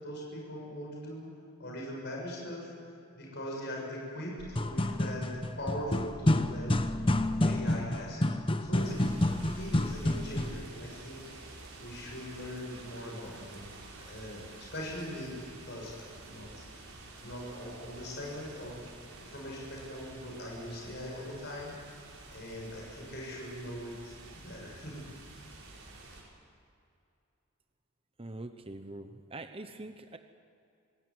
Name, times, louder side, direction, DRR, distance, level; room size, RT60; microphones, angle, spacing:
voice 1, 0.0-1.3 1.6-2.7 3.2-6.7 7.4-8.2 8.6-13.7 14.0-16.5 17.2-18.8 19.2-21.7 22.3-25.1, equal, 50° left, -2 dB, 7.1 m, -41 dB
sound 1, 4.4-10.7, left 1 dB, 25° left, 1.0 m, -29 dB
sound 2, 8.7-26.2, right 2 dB, 85° right, 6.6 m, -50 dB
voice 2, 28.2-30.2, right 2 dB, 25° right, 8 dB, 0.9 m, -43 dB
26.0 x 17.0 x 9.5 m, 2.5 s
head